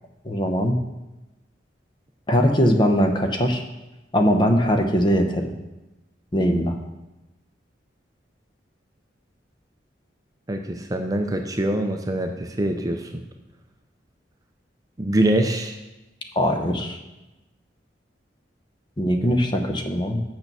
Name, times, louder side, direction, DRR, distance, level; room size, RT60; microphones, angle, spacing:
voice 1, 0.2-0.8 2.3-3.6 4.1-5.5 6.3-6.7 16.4-17.0 19.0-20.2, equal, 25° left, 5 dB, 0.8 m, -21 dB
voice 2, 10.5-13.0 15.0-15.7, right 1 dB, 20° right, 5 dB, 0.5 m, -24 dB
6.6 x 6.0 x 6.8 m, 1.0 s
head